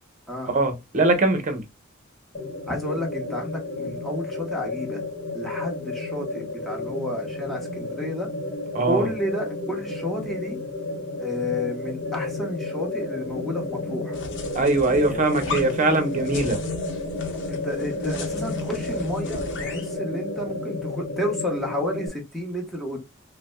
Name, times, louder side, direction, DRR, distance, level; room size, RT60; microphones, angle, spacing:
voice 1, 0.4-1.6 8.7-9.1 14.5-16.6, right 2 dB, 40° right, 0.9 m, -22 dB
sound 1, 2.3-22.1, left 2 dB, 35° left, 1.4 m, -32 dB
voice 2, 2.7-5.0 5.3-8.3 8.8-10.6 11.2-14.2 15.1-15.2 17.5-23.0, left 1 dB, ahead, 1.2 m, -31 dB
sound 2, 14.1-20.0, left 3 dB, 60° left, 0.9 m, -38 dB
5.8 x 2.2 x 2.3 m
head